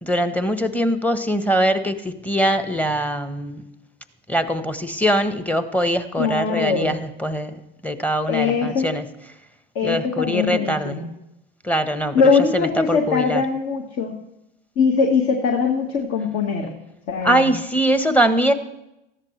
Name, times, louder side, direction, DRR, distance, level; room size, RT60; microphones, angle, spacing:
voice 1, 0.0-3.6 4.3-9.0 9.8-11.0 11.6-12.2 12.5-13.4 17.2-18.5, equal, 5° left, 10 dB, 1.2 m, -22 dB
voice 2, 6.2-7.0 8.3-8.9 9.8-11.1 12.1-14.1 14.8-16.7 17.1-17.5, left 5 dB, 45° left, 1 dB, 1.8 m, -21 dB
19.5 x 14.0 x 3.3 m, 0.90 s
hypercardioid pair, 80°, 30 cm